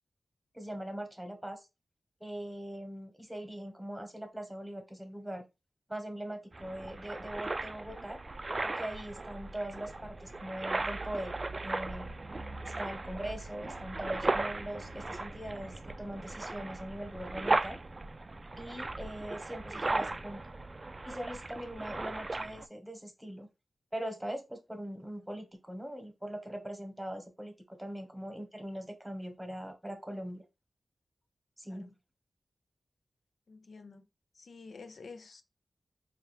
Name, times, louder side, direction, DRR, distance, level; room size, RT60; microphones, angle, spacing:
voice 1, 0.5-1.6 2.2-5.4 5.9-8.2 8.6-12.2 12.6-17.8 18.5-20.5 21.0-23.5 23.9-30.4 31.6-31.9, right 1 dB, 10° right, 1.2 m, -41 dB
sound 1, 6.5-22.7, right 2 dB, 40° right, 0.3 m, -37 dB
voice 2, 33.5-34.1 34.3-35.4, left 4 dB, 75° left, 0.5 m, -49 dB
4.4 x 2.4 x 3.2 m
wide cardioid pair, 65°, 0 cm